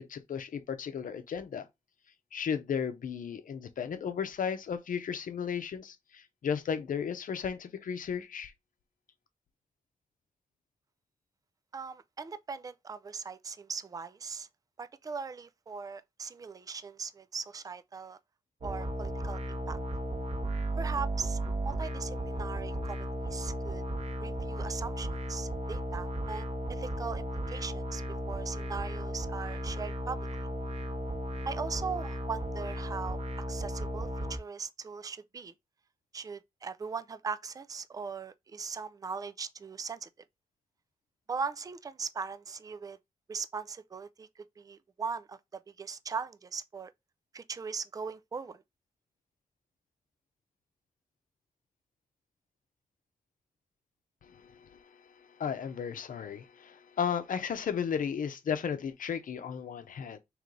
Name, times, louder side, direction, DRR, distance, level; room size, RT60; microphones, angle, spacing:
voice 1, 0.0-1.7 2.3-8.5 54.2-54.8 55.4-60.2, left 7 dB, 75° left, 0.7 m, -34 dB
voice 2, 11.7-14.5 14.8-18.2 18.6-19.8 20.8-23.8 24.2-28.0 28.3-30.5 31.5-33.2 33.5-35.5 36.1-40.1 41.3-43.0 43.3-45.4 45.8-46.9 47.3-48.6, right 5 dB, 25° right, 0.4 m, -39 dB
sound 1, 18.6-34.4, right 1 dB, 50° right, 1.0 m, -35 dB
3.2 x 3.2 x 3.8 m
cardioid pair, 70°, 14 cm